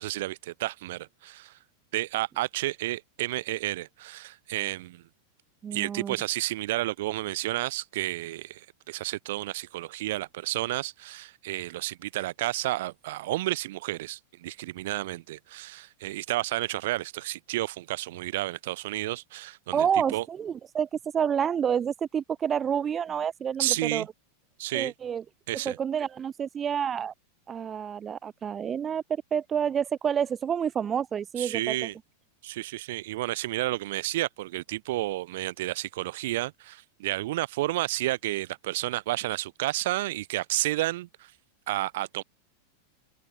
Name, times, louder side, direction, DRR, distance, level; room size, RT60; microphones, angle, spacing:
voice 1, 0.0-1.6 1.9-5.0 5.7-19.9 20.1-20.2 23.6-24.1 24.6-24.9 25.5-25.8 31.4-31.9 32.4-41.3 41.7-42.2, right 17 dB, 55° right, 1.6 m, -31 dB
voice 2, 5.6-6.2 19.7-24.1 24.7-25.2 25.6-27.1 27.5-31.9, right 8 dB, 25° right, 2.5 m, -29 dB
open air
figure-of-eight pair, 90°, 0 cm